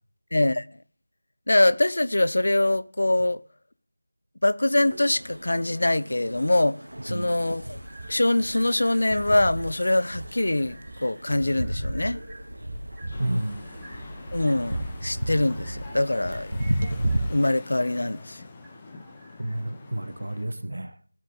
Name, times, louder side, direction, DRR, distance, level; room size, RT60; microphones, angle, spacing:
voice 1, 0.3-0.7 1.5-3.4 4.4-7.8 8.1-12.2 14.3-16.5 17.3-18.4, left 1 dB, 60° left, 0.6 m, -23 dB
sound 1, 4.8-17.2, right 1 dB, 80° right, 2.4 m, -34 dB
sound 2, 7.8-20.0, right 1 dB, 5° right, 3.5 m, -53 dB
sound 3, 13.1-20.5, left 3 dB, 20° left, 1.2 m, -45 dB
voice 2, 13.2-13.6 19.4-20.9, right 1 dB, 65° right, 0.9 m, -30 dB
18.5 x 7.6 x 3.7 m
figure-of-eight pair, 165°, 0 cm